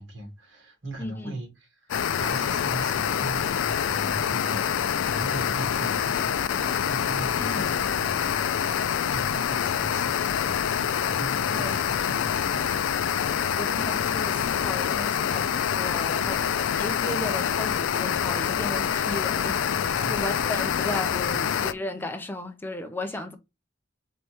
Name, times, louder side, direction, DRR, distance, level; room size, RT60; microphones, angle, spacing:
voice 1, 0.0-6.4 6.8-8.4 9.0-10.2 11.1-12.6 19.9-20.8 21.3-21.6 22.0-22.1 23.0-23.2, right 2 dB, 70° right, 1.8 m, -39 dB
voice 2, 1.0-1.4 7.3-7.8 11.5-11.7 13.5-23.4, left 1 dB, 10° left, 0.5 m, -35 dB
sound 1, 1.9-21.7, left 8 dB, 75° left, 0.3 m, -26 dB
4.2 x 3.4 x 3.0 m
head